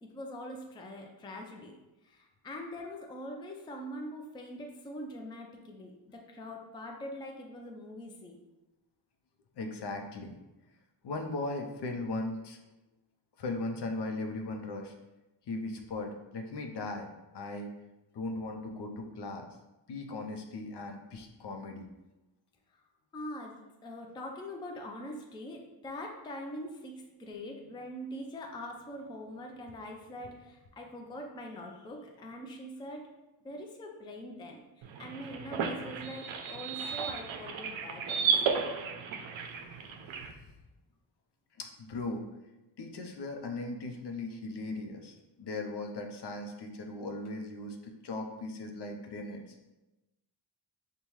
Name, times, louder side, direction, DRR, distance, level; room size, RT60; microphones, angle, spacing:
voice 1, 0.0-1.8 2.0-8.4 23.1-33.1 33.4-34.6 35.0-38.6, left 1 dB, 10° left, 1 dB, 0.4 m, -43 dB
voice 2, 9.6-10.4 11.0-12.6 13.4-14.9 15.5-17.7 18.1-19.5 19.9-21.9 41.6-42.2 42.8-49.4, left 2 dB, 60° left, 3 dB, 0.6 m, -38 dB
sound 1, 34.8-40.3, right 6 dB, 80° right, 0.5 m, -33 dB
5.3 x 2.2 x 3.0 m, 1.0 s
wide cardioid pair, 115°, 46 cm